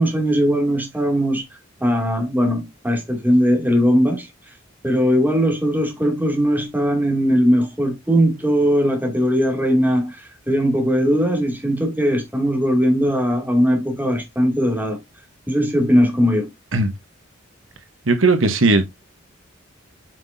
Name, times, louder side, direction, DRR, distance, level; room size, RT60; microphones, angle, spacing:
voice 1, 0.0-1.4 1.8-4.3 4.8-15.0 15.5-16.5, equal, 10° right, 2.6 m, -19 dB
voice 2, 18.1-18.8, right 3 dB, 70° right, 1.3 m, -16 dB
8.9 x 5.8 x 2.7 m
head